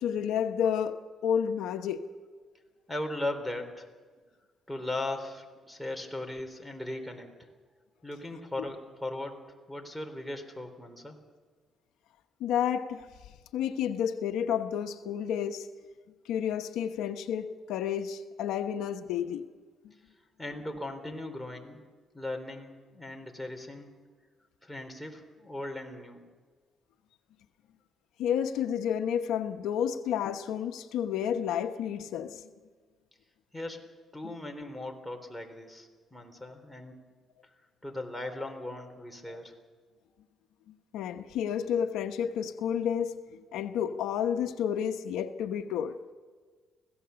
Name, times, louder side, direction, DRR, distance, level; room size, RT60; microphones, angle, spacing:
voice 1, 0.0-2.1 12.4-13.1 13.5-15.7 16.3-19.4 28.2-32.4 40.9-46.0, left 8 dB, 90° left, 0.9 m, -30 dB
voice 2, 2.9-3.9 4.7-7.3 8.0-9.4 9.7-11.2 20.4-21.8 22.1-23.9 24.6-26.2 33.5-33.8 34.1-37.0 37.8-39.5, left 1 dB, 5° left, 3.5 m, -38 dB
24.5 x 16.5 x 7.0 m
cardioid pair, 90°, 0 cm